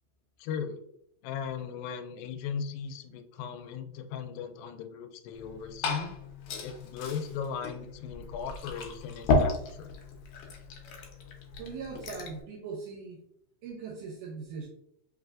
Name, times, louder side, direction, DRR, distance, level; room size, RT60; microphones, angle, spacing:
voice 1, 0.4-0.8 1.2-6.1 6.6-9.9, left 7 dB, 90° left, 8 dB, 2.3 m, -37 dB
Glass / Fill (with liquid), 5.3-12.4, left 3 dB, 75° left, 1.8 m, -33 dB
voice 2, 11.6-13.2 13.6-14.7, right 5 dB, 75° right, -1 dB, 2.1 m, -40 dB
4.8 x 3.2 x 2.4 m, 0.72 s
omnidirectional pair, 3.9 m